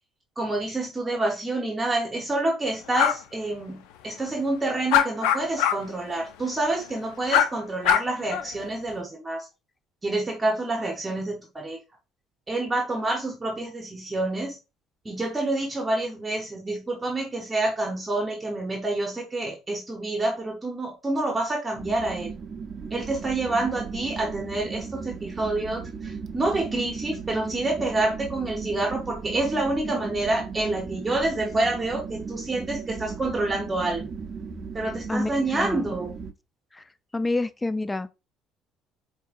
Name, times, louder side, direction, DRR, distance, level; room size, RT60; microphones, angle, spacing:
voice 1, 0.4-9.5 10.0-11.8 12.5-14.5 15.0-22.3 22.9-34.1 34.7-36.1, right 2 dB, 20° right, 0.8 m, -28 dB
sound 1, 2.9-3.1 4.9-5.8 6.1-6.2 7.3-7.5 7.8-8.4, left 10 dB, 85° left, 0.4 m, -21 dB
sound 2, 21.8-36.3, right 5 dB, 40° right, 0.5 m, -36 dB
voice 2, 35.1-35.9 36.7-36.8 37.1-38.1, left 2 dB, 15° left, 0.4 m, -28 dB
4.7 x 2.7 x 2.4 m
supercardioid pair, 90°, 0 cm